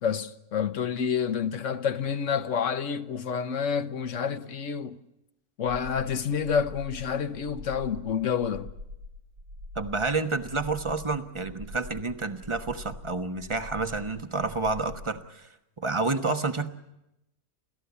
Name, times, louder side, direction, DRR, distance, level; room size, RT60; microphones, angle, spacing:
voice 1, 0.0-5.0 5.6-8.7, left 7 dB, 55° left, 1.3 m, -28 dB
sound 1, 8.4-15.1, left 1 dB, 70° right, 7.1 m, -44 dB
voice 2, 9.7-15.5 15.8-16.7, right 3 dB, 20° right, 1.1 m, -29 dB
30.0 x 14.5 x 8.3 m
omnidirectional pair, 1.6 m